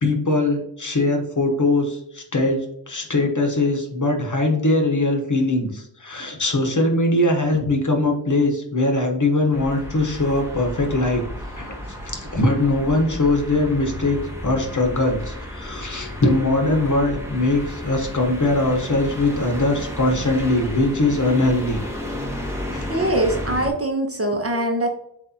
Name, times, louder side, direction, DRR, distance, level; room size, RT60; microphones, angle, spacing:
voice 1, 0.0-11.2 11.6-21.8 22.7-22.9, left 2 dB, 45° left, 2 dB, 1.1 m, -21 dB
sound 1, 9.5-23.7, left 1 dB, 5° right, 1.0 m, -32 dB
voice 2, 22.9-24.9, right 1 dB, 35° right, 3 dB, 0.8 m, -22 dB
7.5 x 2.5 x 2.8 m, 0.76 s
wide cardioid pair, 65°, 42 cm